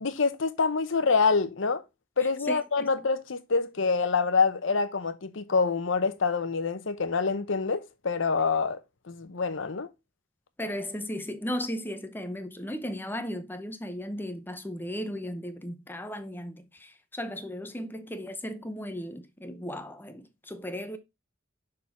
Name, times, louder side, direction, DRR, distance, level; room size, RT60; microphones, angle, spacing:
voice 1, 0.0-1.8 2.2-8.8 9.1-9.9, left 4 dB, 70° left, 0.8 m, -26 dB
voice 2, 2.2-2.9 10.6-21.0, equal, 10° left, 0.7 m, -36 dB
6.6 x 3.8 x 4.2 m
head